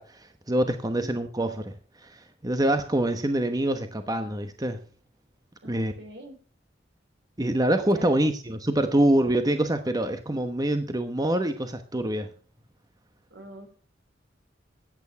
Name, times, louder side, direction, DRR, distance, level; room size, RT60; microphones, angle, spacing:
voice 1, 0.0-1.7 2.0-4.8 5.7-5.9 7.4-12.3, right 1 dB, 20° right, 1.1 m, -25 dB
voice 2, 5.6-6.4 7.9-8.1 13.3-13.7, right 1 dB, 75° right, 4.0 m, -44 dB
14.0 x 9.0 x 5.9 m
head